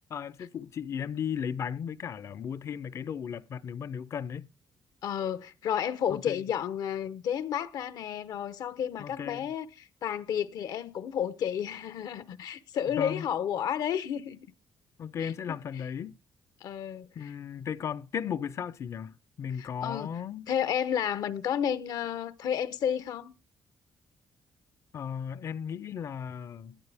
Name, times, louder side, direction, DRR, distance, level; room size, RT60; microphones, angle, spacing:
voice 1, 0.0-4.5 6.1-6.4 9.0-9.5 12.9-13.3 15.0-16.2 17.2-20.5 24.9-26.8, left 8 dB, 45° left, 0.6 m, -36 dB
voice 2, 5.0-14.4 15.2-15.8 16.6-17.3 19.6-20.1 20.5-23.3, left 9 dB, 70° left, 0.9 m, -32 dB
17.0 x 11.0 x 3.4 m
cardioid pair, 150°, 7 cm